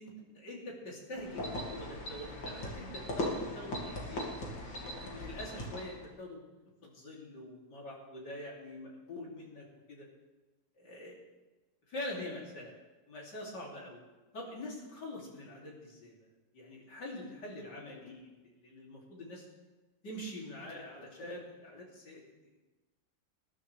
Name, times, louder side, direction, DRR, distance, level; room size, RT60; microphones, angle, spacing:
voice 1, 0.0-4.4 4.8-6.5 6.8-10.1 10.8-11.2 11.9-12.7 13.1-14.0 14.3-16.1 16.5-18.3 18.5-19.4 20.0-22.3, left 1 dB, 60° left, -3 dB, 3.4 m, -44 dB
sound 1, 1.2-6.1, left 1 dB, 80° left, 3.1 m, -39 dB
20.0 x 11.5 x 3.3 m, 1.2 s
omnidirectional pair, 2.0 m